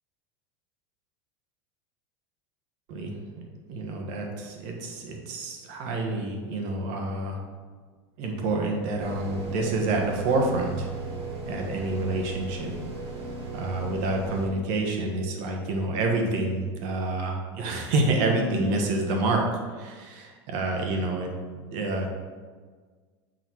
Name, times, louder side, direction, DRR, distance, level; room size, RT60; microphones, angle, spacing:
voice 1, 3.7-7.4 8.2-10.9 11.5-12.7 13.5-19.4 19.7-22.1, right 2 dB, 60° right, 1 dB, 1.4 m, -28 dB
sound 1, 9.0-14.5, right 4 dB, 45° right, 1.9 m, -35 dB
6.3 x 3.9 x 4.6 m, 1.5 s
hypercardioid pair, 105°, 14 cm